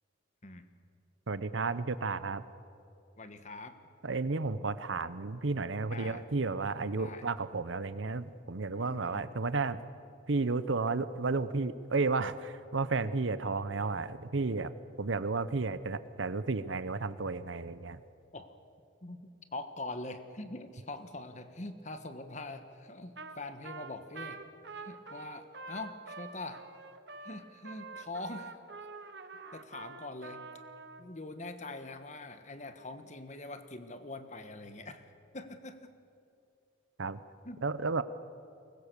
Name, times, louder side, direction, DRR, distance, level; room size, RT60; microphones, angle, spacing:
voice 1, 1.3-2.4 4.0-9.8 10.3-14.7 15.0-18.0 37.0-37.2 37.6-38.0, right 3 dB, 85° right, 14 dB, 0.8 m, -32 dB
voice 2, 3.2-3.8 5.9-6.2 7.0-7.2 8.8-9.2 18.3-18.5 19.0-19.2 19.5-24.4 24.7-26.6 27.2-28.5 29.5-30.5 31.0-35.9 37.4-37.6, left 2 dB, 40° left, 9 dB, 1.4 m, -43 dB
Trumpet, 23.2-23.4 23.6-31.0, right 4 dB, 60° right, 1.2 m, -46 dB
23.5 x 20.5 x 6.8 m, 2.6 s
head